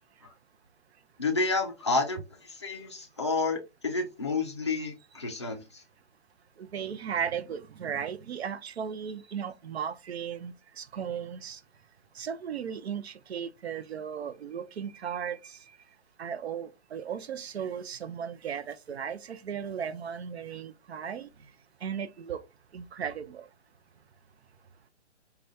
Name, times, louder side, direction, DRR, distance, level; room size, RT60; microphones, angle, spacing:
voice 1, 1.2-5.8, left 3 dB, 25° left, 0.4 m, -30 dB
voice 2, 6.6-11.6 12.2-15.6 16.2-21.3 21.8-22.4 22.7-23.5, right 7 dB, 65° right, 0.5 m, -36 dB
4.9 x 2.3 x 2.6 m
hypercardioid pair, 170°, 35 cm